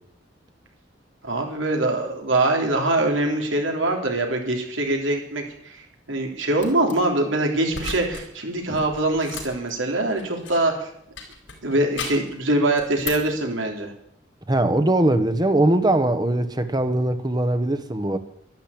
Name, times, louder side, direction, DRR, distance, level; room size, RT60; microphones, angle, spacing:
voice 1, 1.2-5.8 6.1-10.9 11.6-13.9, right 2 dB, 90° right, 2 dB, 3.6 m, -23 dB
sound 1, 6.6-6.9 7.7-8.3 8.6-10.7 11.2-12.3 12.8-13.4, left 4 dB, 90° left, 4.7 m, -35 dB
voice 2, 14.5-18.2, right 1 dB, 20° right, 10 dB, 1.2 m, -21 dB
12.5 x 12.0 x 8.7 m, 0.72 s
head